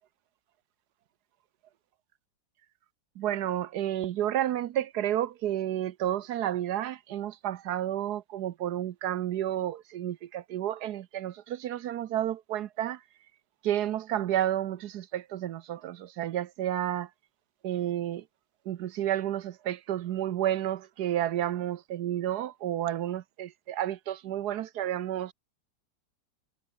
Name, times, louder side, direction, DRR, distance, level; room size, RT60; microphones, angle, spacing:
voice 1, 3.2-13.0 13.6-17.1 17.6-18.2 18.7-25.3, right 12 dB, 70° right, 1.2 m, -31 dB
omnidirectional pair, 2.0 m